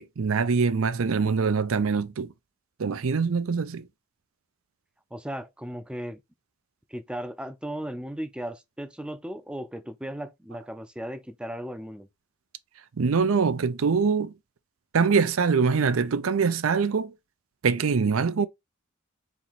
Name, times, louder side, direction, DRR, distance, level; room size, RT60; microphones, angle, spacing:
voice 1, 0.0-2.3 2.8-3.8 13.0-14.3 14.9-17.1 17.6-18.5, right 5 dB, 80° right, 0.5 m, -24 dB
voice 2, 5.1-6.2 6.9-12.1, equal, 5° right, 0.5 m, -36 dB
4.4 x 2.9 x 4.0 m
head